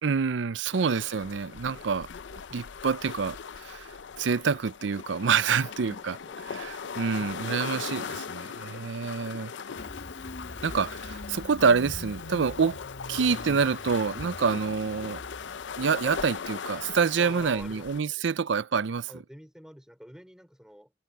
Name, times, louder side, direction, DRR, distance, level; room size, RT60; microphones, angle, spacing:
voice 1, 0.0-3.9 4.2-6.2 6.5-9.5 10.6-12.8 13.1-15.2 15.8-19.1, right 5 dB, 80° right, 0.5 m, -27 dB
sound 1, 0.7-18.0, left 6 dB, 80° left, 0.6 m, -39 dB
voice 2, 5.7-6.5 9.2-9.7 17.2-18.3 19.1-20.9, equal, 5° right, 3.8 m, -49 dB
Engine starting, 9.8-16.3, left 1 dB, 60° left, 2.2 m, -43 dB
head